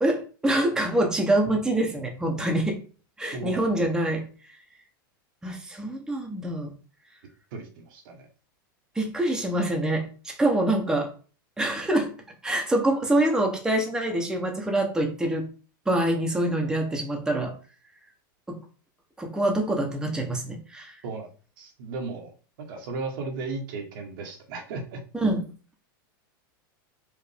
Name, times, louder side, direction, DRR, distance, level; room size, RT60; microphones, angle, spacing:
voice 1, 0.0-2.8 3.2-4.3 5.4-6.7 8.9-11.1 11.6-12.1 12.4-15.5 15.9-17.5 18.5-18.6 19.2-21.0 25.1-25.5, right 1 dB, 5° right, 2 dB, 0.8 m, -25 dB
voice 2, 3.3-3.6 7.5-8.3 21.0-21.3 21.6-22.3 22.6-25.0, right 3 dB, 65° right, 3 dB, 1.2 m, -35 dB
4.7 x 2.6 x 3.4 m, 0.38 s
supercardioid pair, 135°, 12 cm